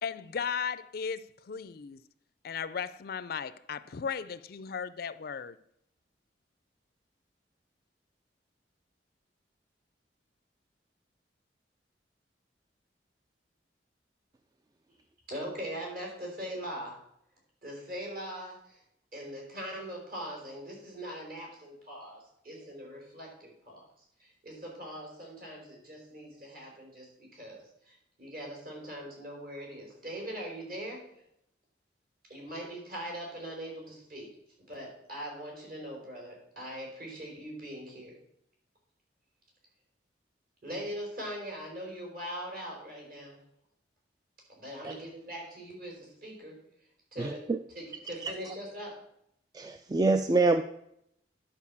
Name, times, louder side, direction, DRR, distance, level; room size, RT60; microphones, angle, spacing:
voice 1, 0.0-2.0 2.4-5.6, left 6 dB, 55° left, 0.4 m, -36 dB
voice 2, 15.3-17.0 17.6-18.8 19.1-23.8 24.2-31.0 32.3-34.3 34.7-38.2 40.6-43.4 44.5-46.5 47.1-47.4 47.7-49.0, equal, 55° right, 4.4 m, -41 dB
voice 3, 47.2-47.6 48.2-48.3 49.5-50.6, right 3 dB, 20° right, 0.4 m, -26 dB
10.5 x 5.0 x 7.1 m
head